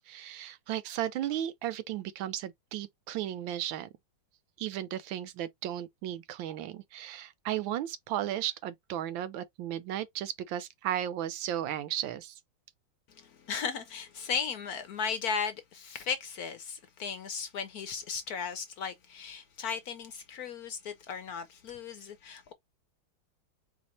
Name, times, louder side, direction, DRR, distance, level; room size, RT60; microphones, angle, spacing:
voice 1, 0.0-3.9 4.6-12.3, right 11 dB, 75° right, 1.3 m, -35 dB
voice 2, 13.1-22.5, left 6 dB, 65° left, 0.9 m, -36 dB
4.2 x 2.5 x 4.1 m
omnidirectional pair, 2.2 m